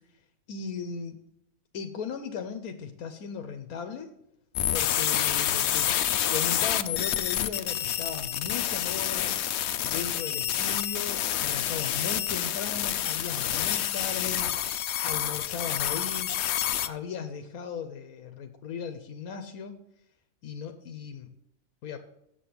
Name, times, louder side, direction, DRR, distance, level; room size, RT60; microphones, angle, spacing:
voice 1, 0.5-1.2 1.7-4.1 4.7-5.9 6.3-9.3 9.8-14.5 15.0-16.3 16.8-19.8 20.4-21.3 21.8-22.0, left 6 dB, 80° left, 8 dB, 1.2 m, -37 dB
sound 1, 4.6-16.9, left 11 dB, 65° left, 0.7 m, -28 dB
7.6 x 7.1 x 6.8 m, 0.81 s
omnidirectional pair, 1.5 m